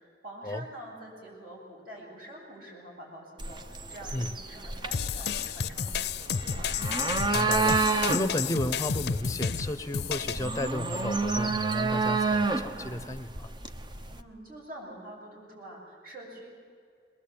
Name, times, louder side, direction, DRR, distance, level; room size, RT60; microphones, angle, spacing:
voice 1, 0.0-6.8 14.1-16.5, right 1 dB, 55° right, -3 dB, 8.0 m, -46 dB
sound 1, 3.4-14.2, right 4 dB, 25° right, 0.8 m, -30 dB
sound 2, 4.9-10.4, left 7 dB, 65° left, 0.6 m, -31 dB
voice 2, 7.3-13.5, left 1 dB, 20° left, 9 dB, 0.8 m, -33 dB
22.5 x 19.5 x 8.6 m, 2.3 s
head